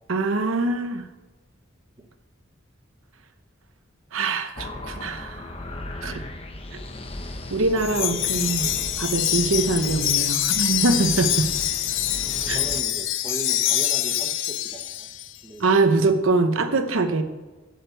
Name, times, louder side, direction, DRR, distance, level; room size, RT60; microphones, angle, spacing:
voice 1, 0.1-1.0 4.1-5.4 6.0-6.2 7.5-8.7 9.0-11.5 12.5-12.6 15.6-17.2, right 3 dB, 85° right, 8 dB, 0.9 m, -23 dB
sound 1, 4.6-12.8, left 2 dB, 30° left, 0.8 m, -37 dB
voice 2, 7.6-8.3 9.3-9.4 12.5-15.1 15.4-15.9, right 2 dB, 20° right, 3 dB, 0.9 m, -39 dB
Wind chime, 7.8-15.3, left 12 dB, 70° left, 0.6 m, -25 dB
7.8 x 6.6 x 8.1 m, 1.2 s
head